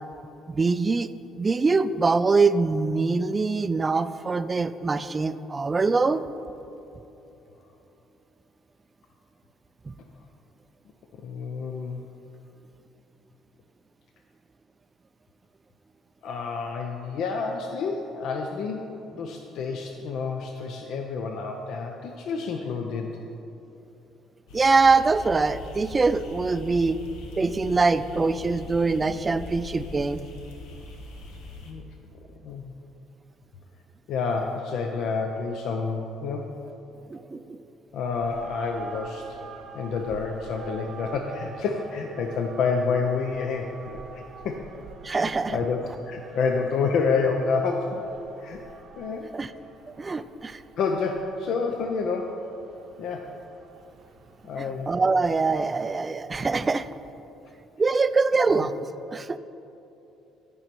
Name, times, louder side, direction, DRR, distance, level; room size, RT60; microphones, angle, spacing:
voice 1, 0.5-1.1 1.4-6.2 9.9-10.0 24.5-27.0 27.4-30.2 37.1-37.6 45.0-45.6 49.3-49.5 50.0-50.6 54.9-56.9 57.8-58.7 59.1-59.4, right 4 dB, 25° right, 14 dB, 0.3 m, -23 dB
voice 2, 11.2-12.0 16.2-23.2 31.7-31.8 32.4-32.7 34.1-36.5 37.9-39.4 39.7-44.6 45.1-48.0 48.4-48.6 49.0-49.3 50.8-52.4 53.0-53.3 54.4-54.9 58.4-58.7, left 4 dB, 70° left, 3 dB, 0.5 m, -29 dB
sound 1, 24.5-31.7, left 2 dB, 85° left, 1.2 m, -41 dB
sound 2, 38.0-55.9, right 5 dB, 60° right, 0.7 m, -47 dB
12.0 x 5.3 x 4.5 m, 3.0 s
supercardioid pair, 85°, 0 cm